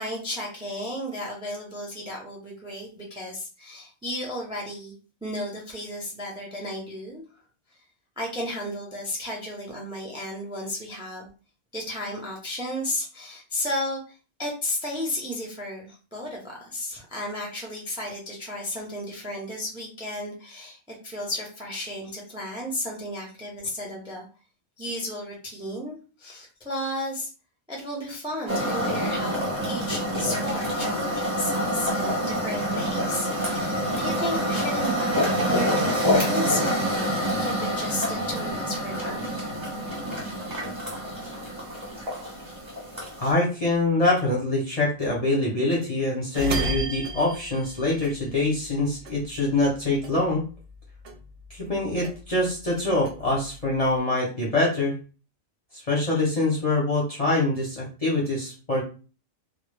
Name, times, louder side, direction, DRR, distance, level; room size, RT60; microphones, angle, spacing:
voice 1, 0.0-4.9 5.2-7.2 8.2-11.3 11.7-24.3 24.8-27.3 27.7-36.8 37.4-39.3, left 1 dB, 10° right, -1 dB, 0.3 m, -33 dB
sound 1, 28.5-43.3, equal, 25° right, 0.9 m, -27 dB
voice 2, 43.2-50.4 51.5-55.0 55.7-58.8, left 2 dB, 40° left, -4 dB, 0.5 m, -24 dB
sound 2, 46.3-48.8 49.0-50.8 51.0-52.5 52.8-54.0, right 2 dB, 70° right, 0.8 m, -33 dB
2.2 x 2.0 x 3.2 m, 0.35 s
omnidirectional pair, 1.3 m